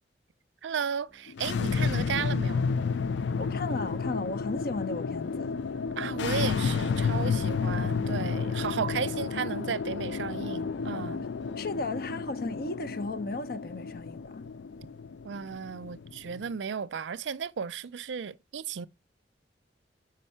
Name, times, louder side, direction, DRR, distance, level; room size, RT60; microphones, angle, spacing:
voice 1, 0.6-2.7 6.0-11.2 15.2-18.9, right 6 dB, 80° right, 0.4 m, -34 dB
sound 1, 1.1-11.9, equal, ahead, 0.5 m, -53 dB
sound 2, 1.3-16.6, left 5 dB, 80° left, 0.4 m, -31 dB
voice 2, 3.4-5.5 11.6-14.4, left 2 dB, 55° left, 0.7 m, -35 dB
5.4 x 5.2 x 5.5 m
head